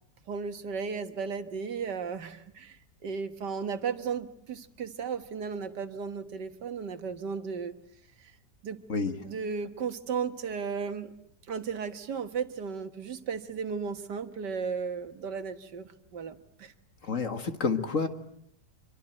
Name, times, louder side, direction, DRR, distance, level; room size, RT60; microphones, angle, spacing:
voice 1, 0.3-7.8 8.2-8.3 8.6-8.8 9.2-11.1 11.5-16.7, right 6 dB, 80° right, 9 dB, 2.1 m, -35 dB
voice 2, 17.0-18.1, left 4 dB, 50° left, 9 dB, 2.1 m, -29 dB
26.0 x 24.0 x 9.2 m, 0.72 s
omnidirectional pair, 1.8 m